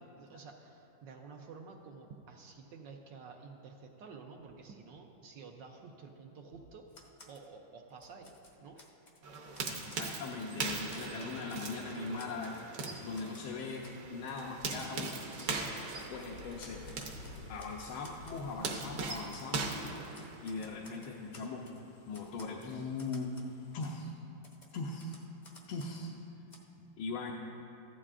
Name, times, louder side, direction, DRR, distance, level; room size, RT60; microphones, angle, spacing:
voice 1, 0.0-6.8 7.3-8.9 9.9-10.0, right 4 dB, 70° right, 2 dB, 1.2 m, -51 dB
Typewriter, 6.9-7.5 7.9-9.2 9.5-11.1 11.5-11.8 12.2-13.5 13.8-14.0 14.3-14.4 14.8-14.9 15.2-15.5 16.0-16.2 16.6-18.8 19.1-19.9 20.1-21.8 22.1-23.5 23.8-23.9 24.4-26.1 26.5-26.6, left 2 dB, 40° left, 0.6 m, -57 dB
sound 1, 9.2-20.7, right 3 dB, 55° right, 1.3 m, -41 dB
voice 2, 9.7-12.5 13.0-15.2 16.1-16.8 17.5-19.8 20.4-21.7 22.1-23.3 23.7-24.1 24.7-25.1 25.7-26.1 27.0-27.3, left 3 dB, 85° left, -1 dB, 1.6 m, -40 dB
sound 2, 14.3-24.1, left 2 dB, 65° left, 1.1 m, -56 dB
15.0 x 12.0 x 2.5 m, 2.7 s
omnidirectional pair, 2.2 m